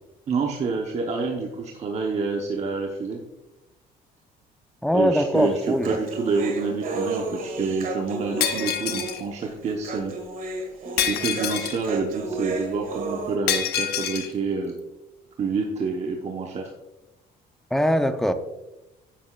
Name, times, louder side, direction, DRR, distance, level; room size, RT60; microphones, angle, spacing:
voice 1, 0.3-3.2 4.9-10.1 11.0-14.7 15.4-16.7, right 4 dB, 40° right, 1 dB, 1.0 m, -27 dB
voice 2, 4.8-6.0 10.8-11.0 17.7-18.3, equal, ahead, 8 dB, 0.6 m, -22 dB
Human voice, 5.3-13.4, right 3 dB, 55° right, 1.7 m, -33 dB
Shatter, 8.4-9.2 11.0-11.8 13.5-14.3, left 9 dB, 70° left, 0.9 m, -26 dB
10.0 x 8.0 x 2.4 m, 0.99 s
cardioid pair, 110°, 17 cm